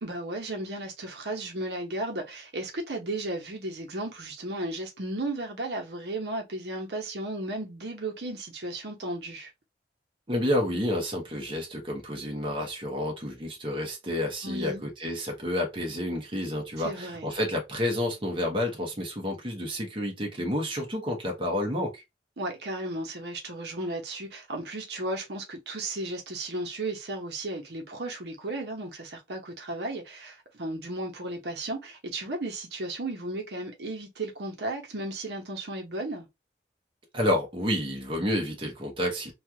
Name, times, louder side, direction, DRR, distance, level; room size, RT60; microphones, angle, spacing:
voice 1, 0.0-9.5 14.4-14.8 16.8-17.3 22.4-36.3, right 2 dB, 70° right, 0.9 m, -34 dB
voice 2, 10.3-22.0 37.1-39.3, left 1 dB, 30° right, 1.0 m, -30 dB
3.2 x 2.4 x 2.8 m
head